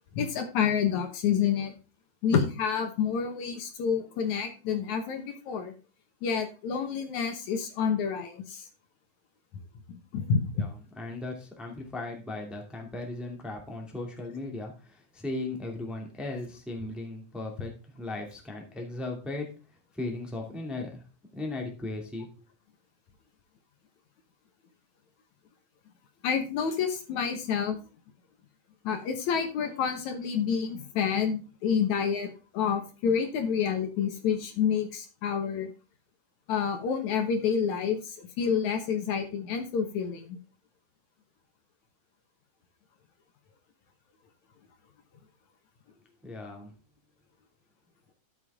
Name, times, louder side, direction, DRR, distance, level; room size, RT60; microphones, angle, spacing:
voice 1, 0.1-1.7 2.2-5.7 6.2-8.7 9.9-10.4 26.2-27.8 28.8-35.7 36.5-40.4, left 7 dB, 65° left, 6 dB, 2.4 m, -28 dB
voice 2, 10.6-21.0 21.3-22.3 46.2-46.7, left 2 dB, ahead, 1 dB, 1.8 m, -37 dB
13.0 x 7.1 x 3.6 m, 0.34 s
omnidirectional pair, 3.7 m